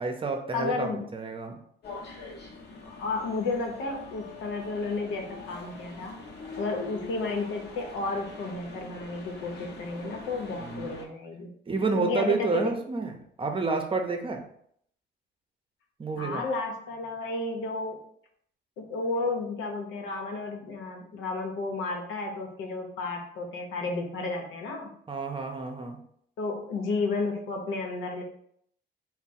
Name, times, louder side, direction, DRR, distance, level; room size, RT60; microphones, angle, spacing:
voice 1, 0.0-1.6 10.6-10.9 11.7-14.4 16.0-16.5 25.1-26.0, right 4 dB, 25° right, 4 dB, 0.7 m, -30 dB
voice 2, 0.5-1.0 2.8-6.1 6.6-11.5 11.9-12.7 16.2-18.0 18.8-24.9 26.4-28.2, left 3 dB, 90° left, 2 dB, 0.9 m, -32 dB
sound 1, 1.8-11.1, left 3 dB, 55° left, 0.8 m, -43 dB
3.5 x 2.1 x 4.1 m, 0.67 s
cardioid pair, 90°, 20 cm